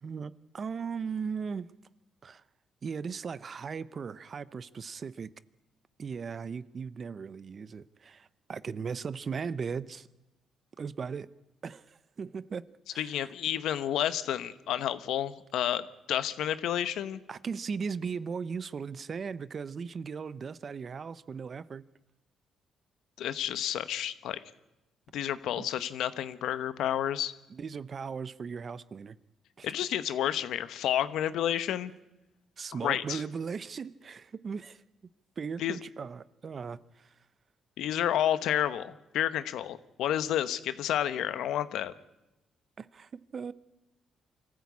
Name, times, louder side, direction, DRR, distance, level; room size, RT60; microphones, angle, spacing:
voice 1, 0.0-1.7 2.2-2.4 2.8-5.3 6.0-10.1 10.8-11.3 11.6-13.1 17.3-21.9 25.5-25.7 27.5-29.2 29.6-29.9 32.6-34.8 35.4-37.1 42.8-43.5, right 6 dB, 45° right, 0.7 m, -38 dB
voice 2, 13.0-17.2 23.2-24.4 25.1-27.3 29.6-31.9 32.8-33.2 35.6-35.8 37.8-41.9, left 11 dB, 80° left, 1.0 m, -30 dB
24.5 x 14.5 x 8.5 m
cardioid pair, 90°, 0 cm